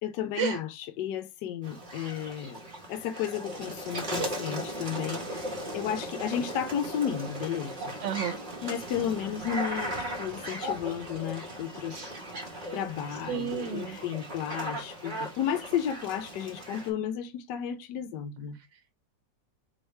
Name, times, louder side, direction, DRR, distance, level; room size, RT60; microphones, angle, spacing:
voice 1, 0.0-8.0 8.6-12.1 12.7-18.6, left 9 dB, 75° left, 1.2 m, -33 dB
sound 1, 1.6-16.9, right 1 dB, 30° right, 1.4 m, -37 dB
voice 2, 8.0-8.4 11.9-12.1 13.3-14.0, right 8 dB, 85° right, 1.3 m, -31 dB
4.5 x 3.1 x 3.2 m
omnidirectional pair, 1.9 m